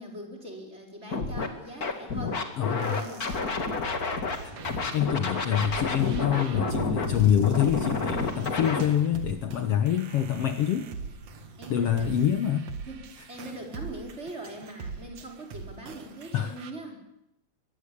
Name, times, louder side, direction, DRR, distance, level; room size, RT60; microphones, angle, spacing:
voice 1, 0.0-2.4 2.7-3.5 11.6-12.1 12.9-17.0, right 1 dB, 20° right, 1 dB, 4.9 m, -41 dB
Scratching (performance technique), 1.1-1.5 1.8-4.4 4.6-8.8, left 4 dB, 30° left, 2.4 m, -30 dB
sound 1, 2.1-2.4 2.8-3.0 3.3-3.7 4.1-13.7, equal, 80° left, 8.9 m, -43 dB
sound 2, 2.5-16.7, right 5 dB, 65° right, 3.0 m, -43 dB
voice 2, 2.6-3.0 4.9-10.9 11.7-12.7 16.3-16.6, left 10 dB, 60° left, 9 dB, 1.9 m, -26 dB
23.5 x 21.0 x 8.6 m, 0.80 s
omnidirectional pair, 3.3 m